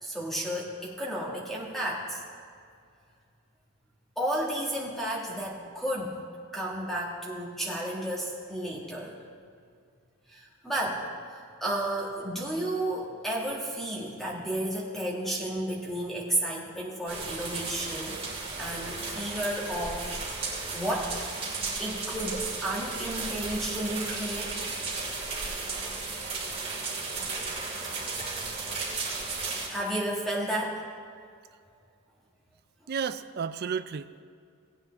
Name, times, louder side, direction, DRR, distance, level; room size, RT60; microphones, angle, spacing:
voice 1, 0.0-2.2 4.2-6.2 6.5-9.2 10.3-11.0 11.3-18.2 18.6-20.1 20.7-21.1 21.8-24.7 27.1-28.1 29.7-30.8, right 1 dB, ahead, -4 dB, 1.8 m, -32 dB
sound 1, 17.1-29.7, right 3 dB, 25° right, 2.4 m, -34 dB
voice 2, 32.9-34.2, right 6 dB, 45° right, 12 dB, 0.4 m, -32 dB
18.0 x 8.7 x 3.5 m, 2.3 s
head